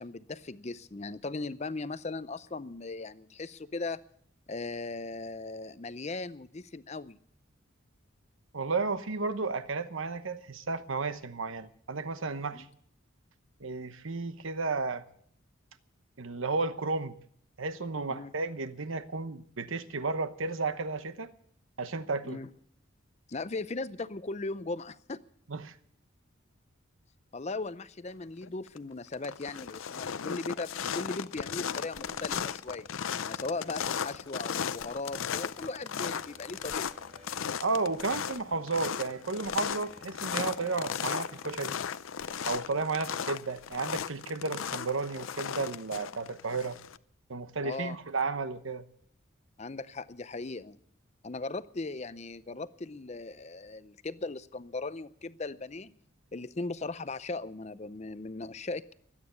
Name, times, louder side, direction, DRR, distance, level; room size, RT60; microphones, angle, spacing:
voice 1, 0.0-4.0 4.5-7.2 12.5-12.7 18.1-18.3 22.2-22.5 23.3-25.2 27.3-32.9 33.3-37.1 47.6-48.0 49.6-50.8 51.2-55.9 56.3-58.9, left 3 dB, 35° left, 15 dB, 0.6 m, -38 dB
voice 2, 8.5-12.7 13.6-15.0 16.2-17.2 17.6-21.3 21.8-22.4 25.5-25.7 37.6-41.7 42.4-46.8 47.3-48.9, right 3 dB, 80° right, 11 dB, 1.0 m, -33 dB
sound 1, 28.4-28.8 29.1-47.0, left 7 dB, 80° left, 0.6 m, -36 dB
sound 2, 31.4-41.6, right 1 dB, 30° right, 3.1 m, -57 dB
22.0 x 9.1 x 6.9 m, 0.65 s
head